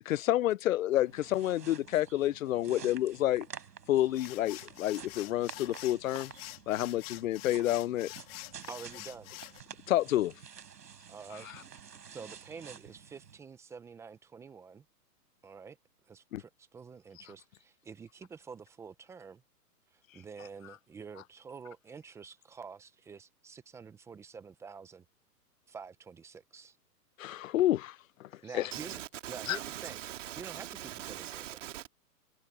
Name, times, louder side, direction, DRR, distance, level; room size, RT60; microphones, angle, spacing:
voice 1, 0.1-3.5 3.9-6.3 6.7-8.1 9.9-10.3 16.3-16.4 27.2-28.3 28.5-28.7 29.5-29.6, left 14 dB, 55° left, 0.5 m, -29 dB
sound 1, 1.0-13.4, right 7 dB, 75° right, 5.0 m, -50 dB
sound 2, 4.0-9.6, left 20 dB, 35° left, 3.0 m, -47 dB
voice 2, 8.7-9.3 11.1-11.5 12.1-14.8 15.4-15.8 16.1-19.4 19.9-25.0 25.7-26.8 28.4-29.0 29.3-30.0 30.4-31.6, right 5 dB, 5° right, 0.8 m, -48 dB
voice 3, 28.7-31.9, right 13 dB, 50° right, 2.3 m, -42 dB
hypercardioid pair, 145°, 49 cm